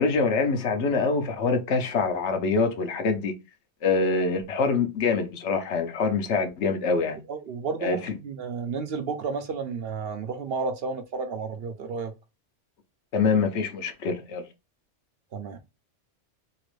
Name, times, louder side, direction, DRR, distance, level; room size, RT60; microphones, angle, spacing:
voice 1, 0.0-3.3 3.8-7.2 7.8-8.1 13.1-14.4, left 4 dB, 75° left, 1.0 m, -25 dB
voice 2, 7.3-12.1 15.3-15.6, right 5 dB, 65° right, 0.7 m, -32 dB
2.9 x 2.4 x 3.0 m
omnidirectional pair, 1.2 m